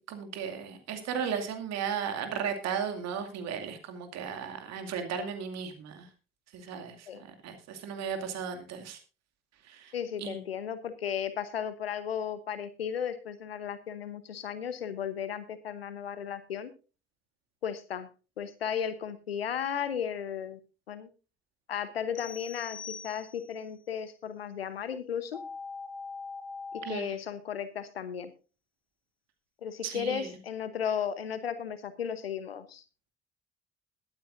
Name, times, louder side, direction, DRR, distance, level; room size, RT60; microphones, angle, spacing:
voice 1, 0.1-6.1 6.5-7.1 7.4-9.0 9.7-9.9 10.2-10.4 26.8-27.2 29.8-30.3, right 7 dB, 60° right, 6 dB, 2.5 m, -35 dB
voice 2, 9.9-16.7 17.6-18.1 18.4-20.6 20.9-21.1 21.7-25.4 26.7-28.3 29.6-32.8, left 8 dB, 85° left, 13 dB, 1.0 m, -35 dB
sound 1, 22.1-23.7, left 6 dB, 60° left, 1.7 m, -45 dB
sound 2, 25.3-26.9, left 4 dB, ahead, 3.2 m, -40 dB
21.0 x 8.8 x 2.6 m, 0.34 s
figure-of-eight pair, 45°, 29 cm